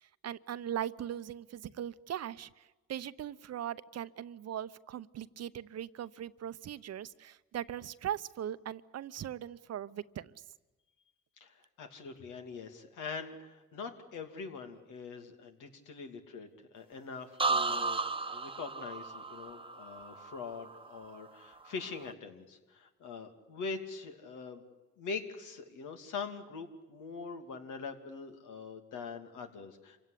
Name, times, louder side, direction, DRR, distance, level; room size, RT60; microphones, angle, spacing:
voice 1, 0.2-2.5 2.9-10.3, right 10 dB, 55° right, 15 dB, 0.8 m, -39 dB
voice 2, 11.4-24.6 25.0-30.0, left 5 dB, 85° left, 5 dB, 2.8 m, -43 dB
sound 1, 17.4-21.2 21.6-22.1, right 3 dB, 15° right, 1.0 m, -35 dB
27.0 x 17.0 x 10.0 m, 1.2 s
cardioid pair, 90°, 30 cm